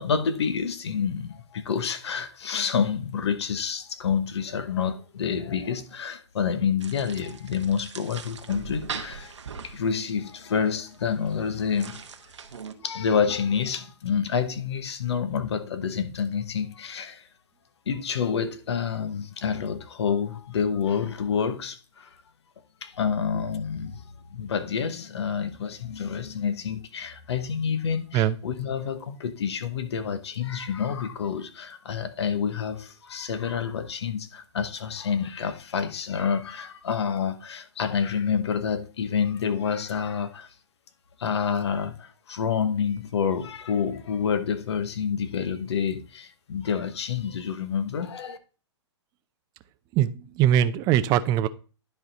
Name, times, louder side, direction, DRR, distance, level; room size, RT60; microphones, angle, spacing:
voice 1, 0.0-9.3 9.6-12.0 12.8-17.2 17.9-22.1 22.8-24.0 24.3-40.5 41.2-48.4, left 7 dB, 65° left, 1.2 m, -28 dB
sound 1, 6.8-12.7, right 6 dB, 75° right, 1.0 m, -41 dB
voice 2, 49.9-51.5, right 11 dB, 25° right, 0.5 m, -22 dB
10.5 x 4.7 x 4.0 m
hypercardioid pair, 125°, 15 cm